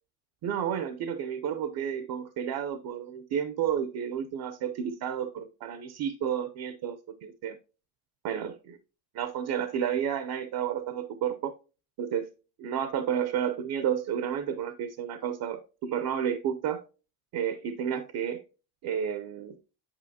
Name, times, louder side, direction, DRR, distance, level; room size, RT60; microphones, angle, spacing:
voice 1, 0.4-7.6 8.2-8.8 9.1-11.5 12.0-12.3 12.6-16.8 17.3-18.4 18.8-19.6, right 8 dB, 50° right, 0.7 m, -31 dB
8.8 x 5.0 x 2.7 m
cardioid pair, 120°, 47 cm